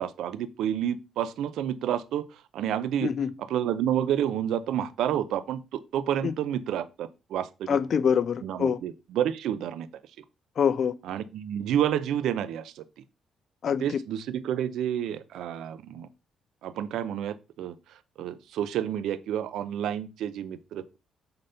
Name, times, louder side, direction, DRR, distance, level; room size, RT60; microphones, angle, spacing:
voice 1, 0.0-3.1 3.5-7.8 8.4-9.9 11.0-12.8 13.8-16.1 16.6-21.0, right 10 dB, 80° right, 0.6 m, -30 dB
voice 2, 7.7-8.8 10.6-10.9 13.6-14.0, left 7 dB, 55° left, 0.6 m, -25 dB
6.6 x 4.2 x 5.6 m
cardioid pair, 90°, 0 cm